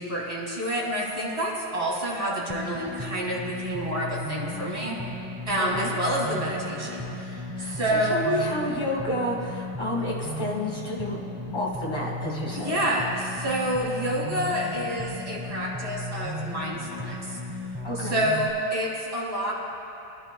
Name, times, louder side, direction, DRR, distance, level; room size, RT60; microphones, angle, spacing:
voice 1, 0.0-5.0 5.5-8.3 12.6-17.4 18.0-19.5, right 1 dB, 30° right, -5 dB, 2.6 m, -28 dB
sound 1, 2.5-18.5, left 1 dB, 15° right, 1.3 m, -35 dB
voice 2, 5.6-5.9 7.5-12.8 17.8-18.2, left 1 dB, 25° left, -3 dB, 1.9 m, -30 dB
23.5 x 11.0 x 2.3 m, 2.7 s
omnidirectional pair, 1.2 m